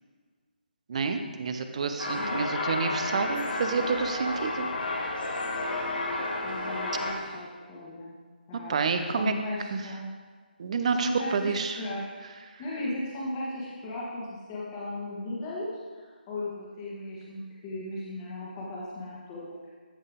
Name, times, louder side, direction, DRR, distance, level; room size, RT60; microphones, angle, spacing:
voice 1, 0.9-4.7 8.7-9.3 9.7-9.8 10.6-11.8, right 5 dB, 40° right, 8 dB, 0.7 m, -29 dB
sound 1, 2.0-7.1, left 2 dB, 65° left, 1.9 m, -31 dB
voice 2, 2.1-2.5 6.4-8.2 8.5-10.1 10.9-12.1 12.6-19.7, left 1 dB, 20° left, -5 dB, 1.6 m, -36 dB
14.0 x 5.5 x 3.7 m, 1.5 s
figure-of-eight pair, 150°, 5 cm